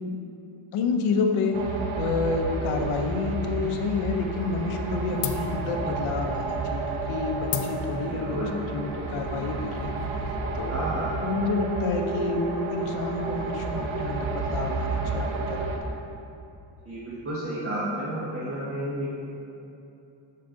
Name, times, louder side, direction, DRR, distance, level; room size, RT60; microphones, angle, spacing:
voice 1, 0.7-1.6 2.0-9.9 10.5-10.8 11.2-15.7, left 4 dB, 90° left, 3 dB, 0.9 m, -29 dB
sound 1, 1.5-15.8, right 3 dB, 75° right, 1.0 m, -31 dB
Westfalen Kolleg Aschenbecher, 3.3-4.1 4.4-4.9 5.2-10.4, left 8 dB, 65° left, 0.6 m, -37 dB
voice 2, 8.1-8.6 10.7-11.2 16.8-19.1, right 1 dB, 30° right, -8 dB, 1.3 m, -31 dB
7.2 x 6.8 x 3.9 m, 2.8 s
cardioid pair, 150°, 48 cm